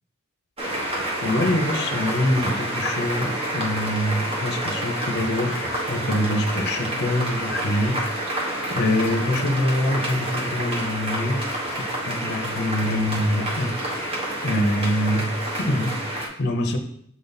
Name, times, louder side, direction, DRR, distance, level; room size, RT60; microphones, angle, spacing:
sound 1, 0.6-16.3, right 1 dB, 25° right, 1.2 m, -28 dB
voice 1, 0.8-11.5 11.8-16.8, left 1 dB, 50° left, 3 dB, 0.7 m, -25 dB
7.4 x 4.0 x 4.0 m, 0.68 s
head